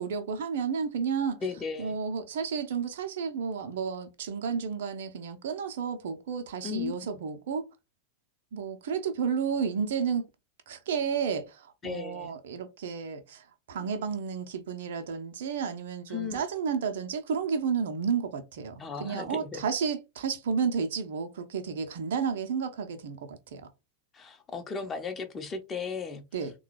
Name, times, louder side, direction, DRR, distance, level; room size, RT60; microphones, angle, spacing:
voice 1, 0.0-1.4 1.8-7.7 8.5-10.2 10.7-13.4 13.7-23.6 26.3-26.5, right 6 dB, 55° right, 0.6 m, -32 dB
voice 2, 1.4-2.0 6.6-6.9 11.8-12.4 16.1-16.4 18.8-19.6 24.1-26.2, left 5 dB, 20° left, 0.8 m, -35 dB
3.6 x 2.3 x 3.2 m
figure-of-eight pair, 90°, 0 cm